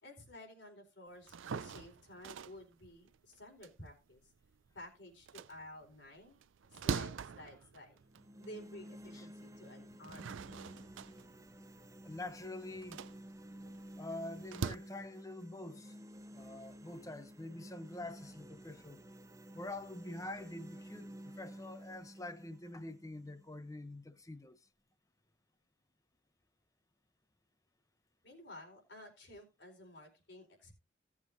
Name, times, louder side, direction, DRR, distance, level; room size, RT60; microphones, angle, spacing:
voice 1, 0.0-4.3 4.7-6.4 6.7-8.0 8.4-10.8 28.2-30.7, left 1 dB, 60° left, 4.3 m, -53 dB
sound 1, 1.2-4.7 5.1-8.6 9.1-9.2 9.8-14.8, right 5 dB, 80° right, 0.5 m, -43 dB
sound 2, 8.0-24.1, right 1 dB, 15° right, 0.5 m, -52 dB
voice 2, 12.0-13.0 14.0-16.0 16.3-19.0 19.5-24.6, left 2 dB, 15° left, 0.8 m, -46 dB
17.5 x 7.3 x 2.7 m
head